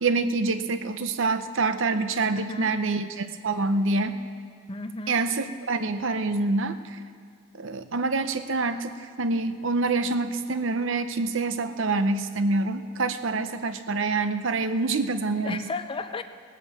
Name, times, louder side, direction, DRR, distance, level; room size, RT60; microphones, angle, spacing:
voice 1, 0.0-4.2 5.1-7.0 7.6-15.6, right 3 dB, 60° right, 10 dB, 0.6 m, -26 dB
voice 2, 2.3-2.7 4.7-5.2 15.4-16.2, left 3 dB, 25° left, 10 dB, 0.4 m, -34 dB
17.5 x 8.3 x 7.0 m, 2.1 s
head